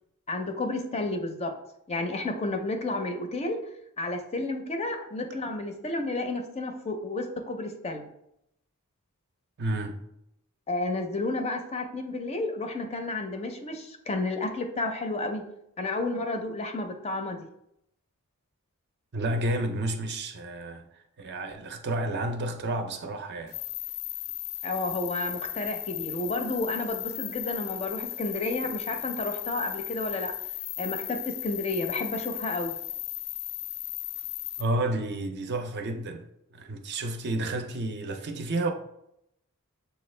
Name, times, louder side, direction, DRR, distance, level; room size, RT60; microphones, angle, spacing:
voice 1, 0.3-1.5 1.9-3.6 4.0-8.1 10.7-15.4 15.8-17.4 24.6-30.3 30.8-32.8, left 2 dB, 30° left, 0.5 m, -31 dB
voice 2, 9.6-10.0 19.1-20.8 21.2-23.6 34.6-36.3 36.5-38.7, right 1 dB, 50° right, 0.5 m, -30 dB
sound 1, 23.5-34.6, left 14 dB, 80° left, 0.4 m, -36 dB
6.8 x 2.3 x 3.2 m
head